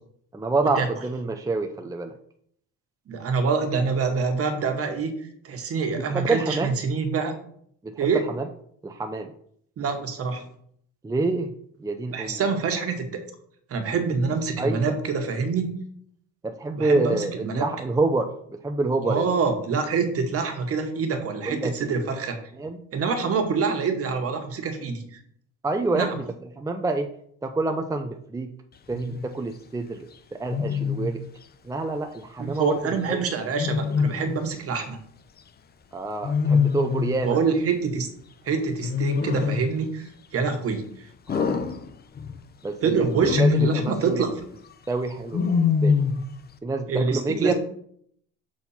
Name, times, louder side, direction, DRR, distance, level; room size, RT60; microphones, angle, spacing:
voice 1, 0.3-2.1 6.1-6.7 7.8-8.1 8.4-8.5 8.8-9.3 11.0-11.5 11.8-12.4 14.6-14.9 16.4-18.3 18.6-19.2 21.5-21.9 22.5-22.8 25.6-26.3 26.6-27.1 27.4-28.5 28.9-30.1 30.4-31.2 31.6-33.2 35.9-37.4 41.3-41.6 42.6-43.0 43.4-44.3 44.9-46.0 46.6-47.5, right 3 dB, 10° right, 4 dB, 0.6 m, -27 dB
voice 2, 3.1-5.2 5.4-7.3 8.0-8.3 9.8-10.4 12.1-13.1 13.7-15.7 16.8-17.6 19.0-22.4 22.9-25.0 25.9-26.2 32.4-35.0 37.2-38.1 38.4-40.1 40.3-41.1 42.8-44.3 46.9-47.5, right 5 dB, 50° right, 5 dB, 1.6 m, -26 dB
Wild animals, 28.9-29.3 30.5-31.2 33.5-34.5 36.2-37.3 38.8-39.8 41.3-42.4 43.1-44.0 45.3-46.3, left 5 dB, 30° left, 0.7 m, -24 dB
6.3 x 4.3 x 5.7 m, 0.65 s
cardioid pair, 105°, 31 cm